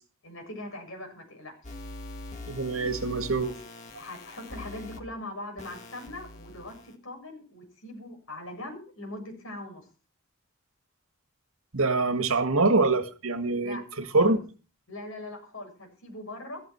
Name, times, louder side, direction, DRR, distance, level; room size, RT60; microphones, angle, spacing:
voice 1, 0.2-1.7 4.0-9.9 13.6-14.4 14.9-16.6, left 1 dB, 70° left, 7.5 m, -41 dB
sound 1, 1.6-5.0 5.6-6.9, left 2 dB, 35° left, 1.9 m, -43 dB
voice 2, 2.5-3.5 11.7-13.8 14.1-14.4, right 3 dB, 80° right, 1.9 m, -24 dB
15.0 x 14.5 x 4.6 m
head